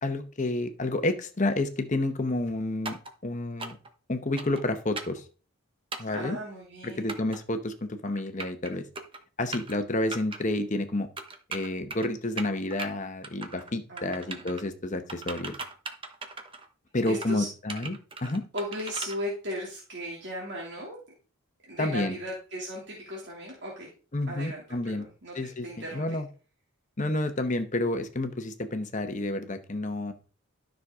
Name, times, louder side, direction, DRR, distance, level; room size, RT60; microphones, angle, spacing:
voice 1, 0.0-3.8 4.1-5.2 6.0-6.4 6.8-8.9 9.4-11.1 11.5-15.6 16.9-18.4 21.8-22.2 24.1-25.1 25.3-25.7 25.9-26.3 27.0-30.1, left 2 dB, 35° left, 8 dB, 0.9 m, -30 dB
sound 1, 2.9-3.1 3.6-3.9 4.4-4.6 5.0-5.2 5.9-6.2 7.1-7.4 8.1-8.7 9.0-9.2 9.5-9.8 10.1-10.4 11.2-12.1 12.4-12.9 13.2-13.7 14.0-14.6 15.1-16.7 17.1-17.3 17.7-19.2, right 3 dB, 25° right, 1.0 m, -38 dB
voice 2, 6.0-7.1 13.9-14.4 17.1-17.5 18.5-21.0 21.7-23.9 24.3-26.2, equal, 50° right, -3 dB, 2.6 m, -37 dB
13.0 x 6.4 x 3.6 m, 0.36 s
head